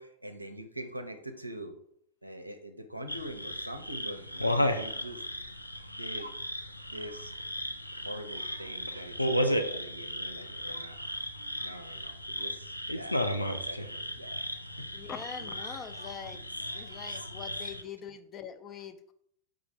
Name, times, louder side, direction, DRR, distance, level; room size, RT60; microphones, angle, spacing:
voice 1, 0.0-1.8 2.2-5.2 5.9-6.3 6.9-7.3 8.0-11.0 11.6-14.9 17.5-17.7, right 1 dB, 85° right, 6 dB, 0.5 m, -43 dB
sound 1, 3.1-17.8, equal, 85° left, 0.4 m, -34 dB
voice 2, 14.9-16.5 16.7-19.1, left 7 dB, 30° left, 9 dB, 0.4 m, -43 dB
4.8 x 2.4 x 4.5 m, 0.70 s
figure-of-eight pair, 90°, 0 cm